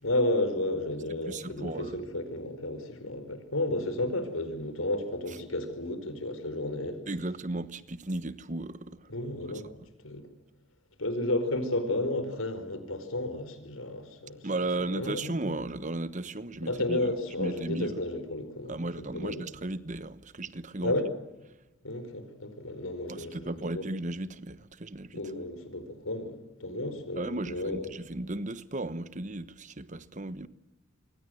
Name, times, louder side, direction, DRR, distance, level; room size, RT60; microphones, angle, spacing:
voice 1, 0.0-7.0 9.1-9.7 10.0-10.3 11.0-14.4 14.9-15.5 16.6-19.4 20.8-21.1 21.8-23.8 25.1-27.9, left 1 dB, 80° left, 5.0 m, -32 dB
voice 2, 1.3-2.0 7.0-9.0 9.6-9.7 14.4-17.1 17.4-18.0 18.7-21.0 23.1-25.2 27.2-30.5, right 2 dB, 35° right, 1.2 m, -35 dB
27.0 x 23.5 x 7.9 m
head